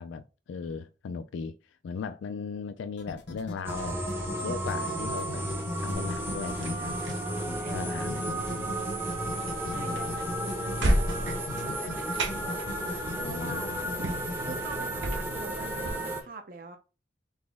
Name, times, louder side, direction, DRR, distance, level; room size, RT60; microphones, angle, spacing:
voice 1, 0.0-1.6 1.8-4.0 4.4-5.5 5.8-7.0 7.7-8.7 9.6-9.9 13.1-13.9, left 5 dB, 80° left, 0.3 m, -37 dB
sound 1, 2.9-14.6, left 2 dB, 65° left, 0.8 m, -40 dB
sound 2, 3.6-16.2, right 1 dB, 10° right, 0.6 m, -33 dB
sound 3, 5.9-15.9, right 1 dB, 80° right, 0.9 m, -35 dB
voice 2, 7.4-8.1 9.6-13.9 14.4-16.8, right 3 dB, 50° right, 0.6 m, -45 dB
4.0 x 2.9 x 3.5 m
head